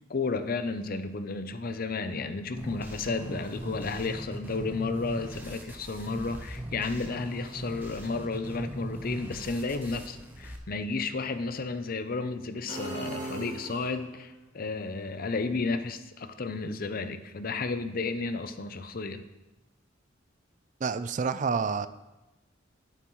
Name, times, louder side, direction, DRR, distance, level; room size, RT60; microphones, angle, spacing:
voice 1, 0.1-19.2, left 3 dB, 50° left, 10 dB, 0.6 m, -32 dB
sound 1, 2.6-10.6, right 1 dB, 10° right, 1.0 m, -40 dB
sound 2, 12.7-14.3, right 1 dB, 65° right, 2.6 m, -38 dB
voice 2, 20.8-21.9, right 5 dB, 40° right, 13 dB, 0.4 m, -28 dB
11.5 x 9.1 x 3.1 m, 1.0 s
head